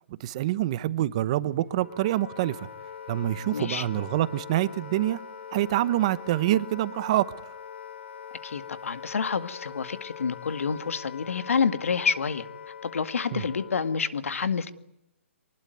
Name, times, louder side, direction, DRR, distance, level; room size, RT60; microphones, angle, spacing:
voice 1, 0.1-2.7 3.1-5.2 5.5-7.3 13.3-13.4, right 14 dB, 25° right, 1.0 m, -26 dB
Wind instrument woodwind instrument, 1.5-14.2, left 7 dB, 60° left, 1.5 m, -43 dB
sound 1, 2.4-10.9, left 11 dB, 35° left, 4.6 m, -52 dB
voice 2, 3.5-3.9 8.4-12.4 12.8-14.7, left 6 dB, 85° left, 2.1 m, -28 dB
24.0 x 20.5 x 9.5 m
hypercardioid pair, 170°, 7 cm